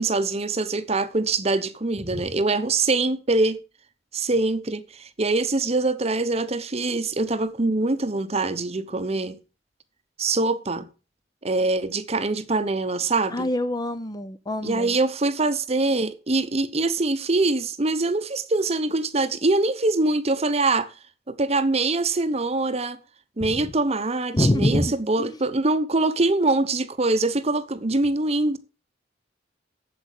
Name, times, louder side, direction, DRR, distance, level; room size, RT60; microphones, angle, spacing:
voice 1, 0.0-3.6 4.1-9.3 10.2-10.9 11.4-13.5 14.6-20.9 21.3-23.0 23.4-28.6, right 2 dB, 35° right, 0.9 m, -24 dB
voice 2, 13.3-14.9 23.4-23.5 24.3-25.4, left 1 dB, 20° left, 0.8 m, -25 dB
8.3 x 7.8 x 8.2 m
head